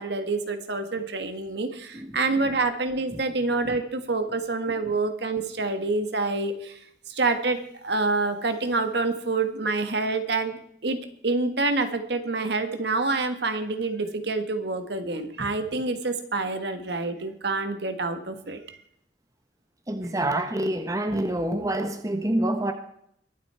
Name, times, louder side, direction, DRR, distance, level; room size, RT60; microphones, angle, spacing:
voice 1, 0.0-6.8 7.1-11.0 11.2-18.8, right 3 dB, 60° right, 8 dB, 1.6 m, -27 dB
voice 2, 1.9-2.4 3.6-3.8 4.7-4.8 15.4-15.5 19.9-22.7, right 1 dB, 20° right, 6 dB, 1.0 m, -27 dB
23.0 x 8.4 x 4.4 m, 0.69 s
head